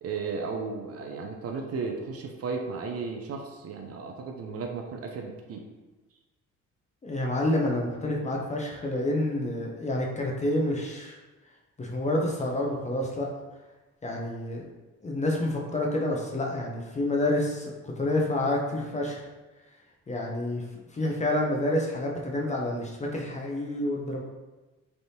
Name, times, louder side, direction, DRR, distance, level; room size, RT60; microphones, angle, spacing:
voice 1, 0.0-5.6, right 4 dB, 50° right, 2 dB, 0.5 m, -34 dB
voice 2, 7.0-11.2 11.8-13.3 14.0-14.6 15.0-19.3 20.1-20.7 20.9-24.2, left 1 dB, 25° left, -1 dB, 0.6 m, -28 dB
3.4 x 2.6 x 2.7 m, 1.2 s
cardioid pair, 90°, 30 cm